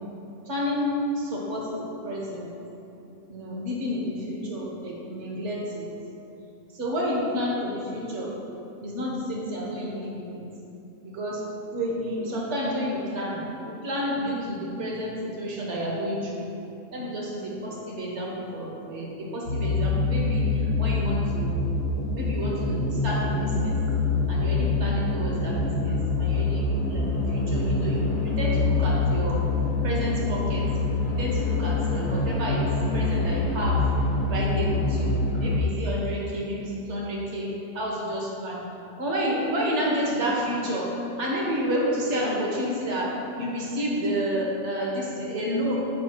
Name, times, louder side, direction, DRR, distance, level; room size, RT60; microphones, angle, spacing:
voice 1, 0.5-2.5 3.3-5.9 6.7-8.3 8.8-10.4 11.0-16.5 16.9-21.6 22.1-23.8 24.3-29.4 29.8-30.7 31.1-32.7 32.9-33.8 34.3-38.6 39.0-45.8, equal, 50° right, -3 dB, 1.5 m, -30 dB
sound 1, 19.5-35.6, left 3 dB, 85° left, 1.4 m, -25 dB
10.5 x 5.6 x 2.9 m, 2.8 s
omnidirectional pair, 1.6 m